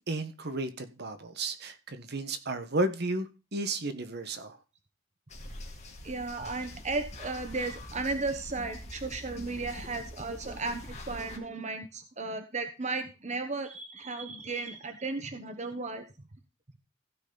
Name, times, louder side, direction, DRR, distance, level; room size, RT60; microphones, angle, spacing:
voice 1, 0.1-3.3 3.5-4.5, right 2 dB, 55° right, 1.3 m, -33 dB
sound 1, 5.3-11.4, left 1 dB, 35° left, 2.5 m, -44 dB
voice 2, 6.0-16.0, right 3 dB, 35° right, 1.1 m, -35 dB
15.5 x 6.4 x 4.0 m
head